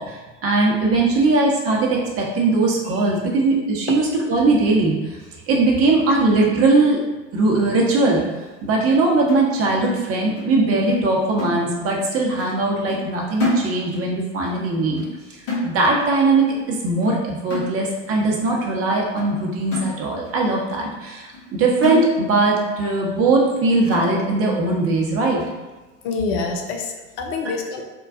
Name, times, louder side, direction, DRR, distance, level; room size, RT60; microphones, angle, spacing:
voice 1, 0.0-5.2 5.5-7.0 7.3-8.2 8.6-15.0 15.6-25.4, right 2 dB, 35° right, -2 dB, 0.9 m, -20 dB
sound 1, 9.3-10.6 10.9-11.1 11.4-12.1 12.4-12.6 12.9-14.2 14.5-14.7 15.0-15.2 15.5-16.2 16.5-16.7 17.0-17.2 17.5-18.1 18.6-18.7 19.2-19.3 19.7-20.4 20.8-20.9 21.3-21.5 21.8-22.6 22.9-23.0 23.4-23.5 23.9-24.5 25.0-25.1 25.4-25.6, left 1 dB, 75° left, 1.2 m, -29 dB
voice 2, 26.0-27.8, left 4 dB, 55° left, 3 dB, 0.6 m, -26 dB
4.6 x 2.2 x 2.5 m, 1.2 s
figure-of-eight pair, 70°, 39 cm